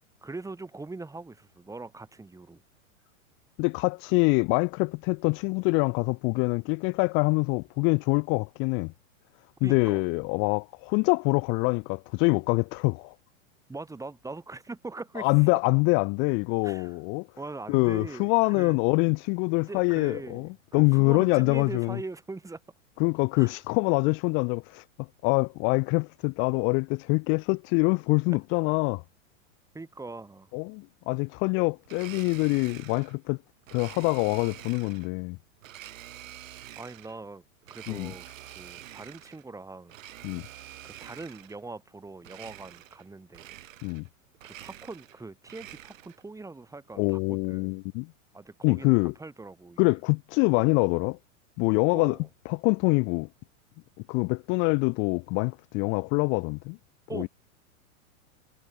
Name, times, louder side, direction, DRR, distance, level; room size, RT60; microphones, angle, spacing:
voice 1, 0.0-2.6 9.6-10.0 13.7-15.6 16.6-17.0 17.4-18.8 19.7-22.6 23.4-23.5 29.7-30.5 36.7-37.4 37.7-39.9 40.8-43.6 44.4-47.8 48.3-50.0 51.9-52.3 57.1-57.3, right 3 dB, 10° right, 4.7 m, -41 dB
voice 2, 3.6-8.9 9.6-13.1 15.2-17.3 17.7-22.0 23.0-29.0 30.5-33.4 33.7-35.4 37.9-38.1 40.2-40.4 43.8-44.0 47.0-48.1 48.6-49.1 49.8-51.2 51.6-52.2 52.5-53.3 54.1-56.8 57.1-57.3, left 33 dB, 30° left, 0.5 m, -25 dB
Domestic sounds home sounds, 31.8-33.2 33.7-35.1 35.6-37.2 37.6-39.4 39.8-41.6 42.2-43.1 43.3-44.1 44.3-46.2, right 13 dB, 70° right, 5.0 m, -47 dB
hypercardioid pair, 125°, 41 cm